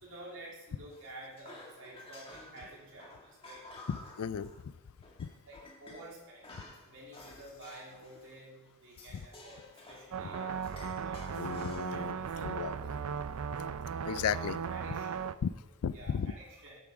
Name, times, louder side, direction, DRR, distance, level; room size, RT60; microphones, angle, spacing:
voice 1, 0.0-3.6 5.4-11.5 11.8-12.7 14.3-14.4 14.7-15.1 15.9-16.8, right 1 dB, 60° right, -5 dB, 3.1 m, -51 dB
sound 1, 0.9-4.7 5.0-6.1 6.4-8.4 8.9-12.0, left 2 dB, 25° left, 1.8 m, -52 dB
voice 2, 3.9-4.5 5.2-5.3 11.4-12.9 14.0-14.6 15.4-15.5 15.8-16.3, left 7 dB, 80° left, 17 dB, 0.4 m, -35 dB
sound 2, 10.1-15.3, right 6 dB, 80° right, 0.5 m, -37 dB
8.8 x 8.5 x 6.0 m, 1.1 s
head